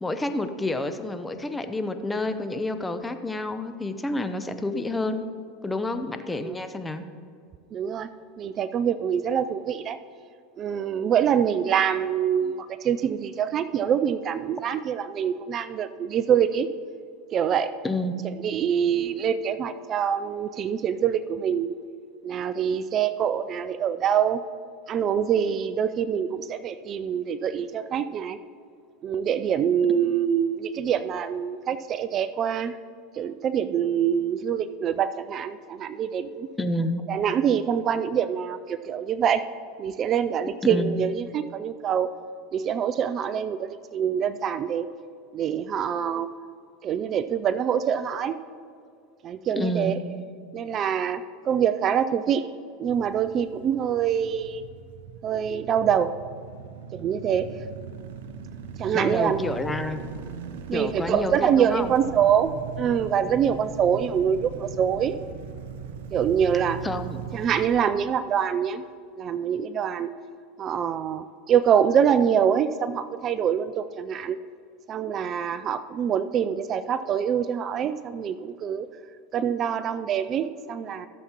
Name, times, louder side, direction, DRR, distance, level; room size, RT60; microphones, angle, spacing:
voice 1, 0.0-5.3 5.6-7.0 17.8-18.1 36.6-37.0 40.6-41.0 49.6-50.0 58.9-60.0 60.7-61.9 66.8-67.2, left 2 dB, 10° left, 9 dB, 0.7 m, -29 dB
voice 2, 7.7-8.1 8.4-10.0 10.6-16.7 17.3-17.7 18.4-21.8 22.2-24.4 24.9-28.4 29.0-32.8 33.1-36.5 37.1-39.4 39.8-42.1 42.5-44.9 45.3-46.3 46.8-48.4 49.2-50.0 50.5-52.5 52.8-54.6 55.2-56.1 56.9-57.5 58.8-59.4 60.7-62.5 62.8-65.3 66.1-66.8 67.3-68.8 69.2-70.1 70.6-74.4 74.9-78.9 79.3-81.1, right 8 dB, 40° right, 13 dB, 0.3 m, -25 dB
sound 1, 52.9-67.8, right 7 dB, 75° right, 0.7 m, -39 dB
15.0 x 7.1 x 3.0 m, 2.2 s
hypercardioid pair, 100°, 0 cm